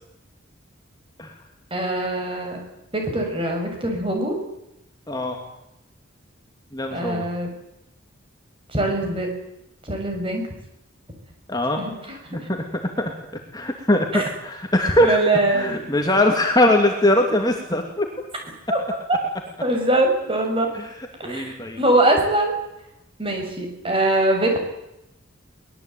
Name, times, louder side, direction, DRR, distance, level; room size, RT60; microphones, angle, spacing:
voice 1, 1.7-2.6 2.9-4.4 6.9-7.5 8.7-9.3 9.8-10.5 11.8-12.5 14.1-14.3 15.0-16.0 18.7-18.8 19.1-19.2 19.6-20.7 21.2-22.6 23.2-24.6, right 1 dB, 25° right, 3 dB, 7.0 m, -22 dB
voice 2, 5.1-5.4 6.7-7.3 11.5-11.8 12.3-12.6 13.0-13.1 13.5-15.2 15.5-18.1 20.7-20.9 21.2-21.8, left 1 dB, 20° left, 3 dB, 2.7 m, -21 dB
23.5 x 21.0 x 9.3 m, 0.86 s
head